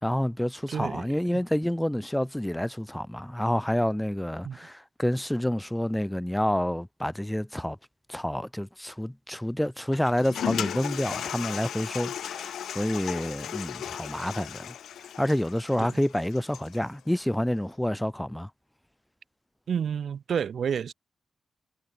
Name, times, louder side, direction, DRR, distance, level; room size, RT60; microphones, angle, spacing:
voice 1, 0.0-7.8 8.1-14.8 15.2-18.5, left 1 dB, 5° left, 2.5 m, -28 dB
voice 2, 0.7-1.0 1.3-1.4 4.4-4.6 15.8-15.9 19.7-20.9, right 7 dB, 70° right, 3.2 m, -30 dB
Toilet flush, 9.9-16.8, left 10 dB, 85° left, 1.7 m, -36 dB
cardioid pair, 65°, 0 cm